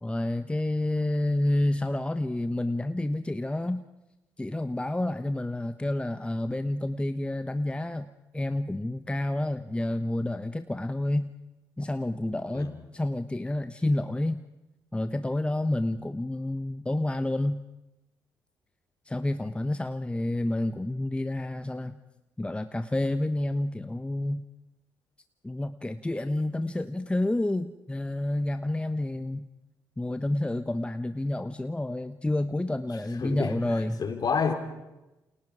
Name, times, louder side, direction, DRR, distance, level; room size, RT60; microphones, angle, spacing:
voice 1, 0.0-3.8 4.4-8.1 8.3-11.3 11.8-14.4 14.9-17.6 19.1-21.9 22.4-24.4 25.4-29.5 30.0-34.0, left 1 dB, 10° left, 10 dB, 1.0 m, -29 dB
voice 2, 33.2-34.5, left 6 dB, 45° left, 5 dB, 4.2 m, -29 dB
29.0 x 28.0 x 5.0 m, 1.0 s
hypercardioid pair, 45°, 9 cm